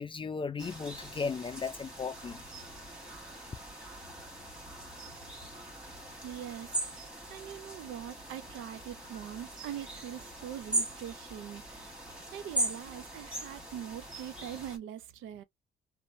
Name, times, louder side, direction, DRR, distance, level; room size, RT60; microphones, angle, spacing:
voice 1, 0.0-2.4, left 5 dB, 25° left, 0.3 m, -36 dB
sound 1, 0.6-14.8, right 2 dB, 5° right, 1.3 m, -40 dB
voice 2, 6.2-12.0 12.3-15.4, right 10 dB, 90° right, 0.5 m, -43 dB
2.7 x 2.1 x 2.6 m
cardioid pair, 90°, 20 cm